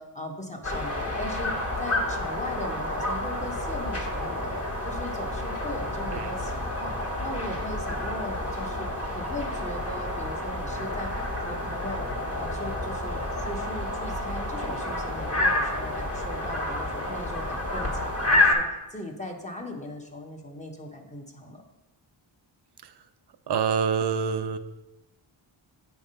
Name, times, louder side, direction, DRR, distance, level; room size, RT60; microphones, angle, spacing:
voice 1, 0.0-7.0 7.2-11.1 11.4-18.6 18.9-21.6, left 1 dB, 15° left, 2 dB, 1.0 m, -39 dB
sound 1, 0.6-18.5, left 1 dB, 30° left, 1.6 m, -29 dB
voice 2, 23.5-24.6, right 6 dB, 55° right, 10 dB, 0.6 m, -25 dB
8.3 x 3.5 x 5.5 m, 1.0 s
cardioid pair, 65°, 50 cm